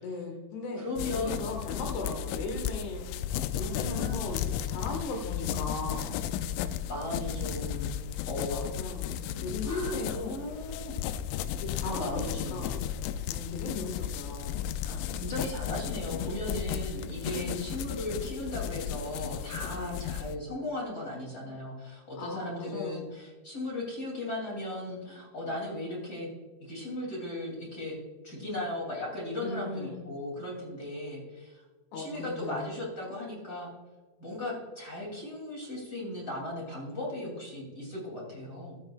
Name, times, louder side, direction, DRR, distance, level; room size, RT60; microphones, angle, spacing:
voice 1, 0.0-0.8 1.1-3.1 3.5-6.2 8.5-10.4 11.5-12.7 13.3-14.6 17.3-17.7 19.8-20.1 22.2-23.1 29.4-30.0 31.9-32.7, left 3 dB, 65° left, 2 dB, 3.3 m, -37 dB
voice 2, 0.8-1.5 3.5-4.3 6.9-7.9 8.2-8.7 9.6-10.9 11.8-12.8 14.8-26.3 26.6-28.0 28.2-31.6 31.9-33.7 34.2-38.8, left 1 dB, 25° left, -3 dB, 2.4 m, -37 dB
sound 1, 1.0-20.4, left 10 dB, 85° left, 2.6 m, -34 dB
14.0 x 10.5 x 2.4 m, 1.3 s
omnidirectional pair, 5.7 m